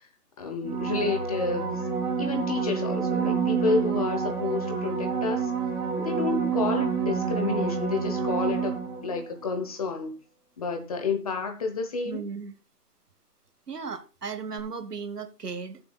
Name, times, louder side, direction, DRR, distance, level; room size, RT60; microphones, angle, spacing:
voice 1, 0.4-1.8 2.2-5.5 6.0-8.7 9.0-10.1 10.6-12.2, left 4 dB, 25° left, 1.0 m, -30 dB
sound 1, 0.6-9.2 14.6-14.7, right 6 dB, 30° right, 2.2 m, -28 dB
voice 2, 12.0-12.5 13.7-15.8, right 5 dB, 75° right, 1.6 m, -36 dB
18.0 x 6.9 x 2.3 m
hypercardioid pair, 155°, 48 cm